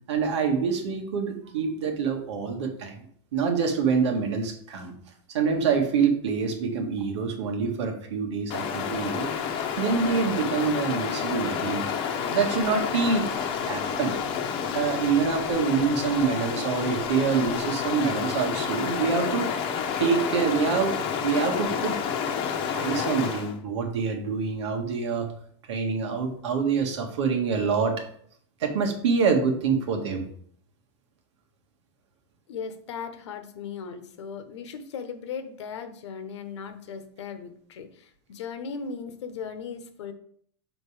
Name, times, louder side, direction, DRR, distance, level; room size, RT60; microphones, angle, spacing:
voice 1, 0.1-3.0 3.3-4.9 5.3-9.3 9.8-11.8 12.3-13.3 13.6-14.2 14.7-19.6 20.0-22.0 22.7-25.3 25.7-28.1 28.6-30.3, right 5 dB, 90° right, 3 dB, 1.6 m, -26 dB
Stream, 8.5-23.6, left 7 dB, 35° left, 0.9 m, -29 dB
voice 2, 32.5-40.1, left 6 dB, 85° left, 8 dB, 1.0 m, -37 dB
6.7 x 3.9 x 5.0 m, 0.63 s
supercardioid pair, 145°, 14 cm